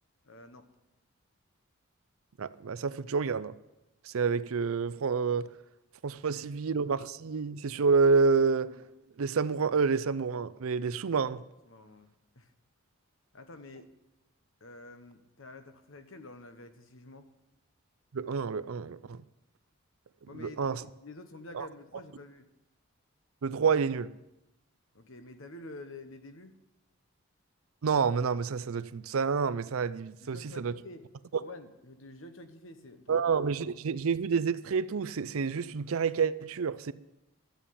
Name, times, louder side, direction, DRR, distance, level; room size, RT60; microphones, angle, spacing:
voice 1, 0.2-0.7 6.1-6.4 11.6-12.5 13.3-13.9 14.6-17.3 20.3-22.5 24.9-26.5 30.2-31.0 31.4-33.3, left 2 dB, 65° left, 1.1 m, -49 dB
voice 2, 2.4-3.5 4.1-5.5 6.0-8.8 9.2-11.4 18.1-19.2 20.3-20.8 21.5-21.7 23.4-24.1 27.8-30.7 33.1-36.9, right 5 dB, 75° right, 0.5 m, -28 dB
13.0 x 8.8 x 7.0 m
head